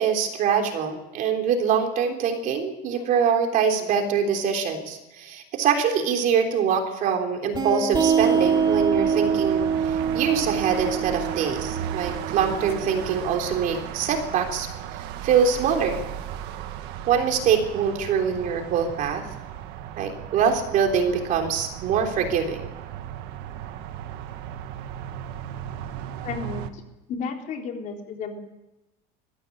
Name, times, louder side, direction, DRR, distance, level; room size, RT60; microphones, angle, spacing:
voice 1, 0.0-14.7 15.2-16.0 17.1-19.3 20.0-22.7, right 7 dB, 45° right, 4 dB, 3.5 m, -24 dB
sound 1, 7.5-12.9, right 6 dB, 20° right, 2.8 m, -24 dB
sound 2, 8.2-26.7, right 11 dB, 60° right, 1.6 m, -35 dB
voice 2, 26.2-26.8 27.1-28.4, left 5 dB, 40° left, 2 dB, 3.8 m, -33 dB
22.0 x 15.0 x 9.8 m, 1.0 s
cardioid pair, 165°, 19 cm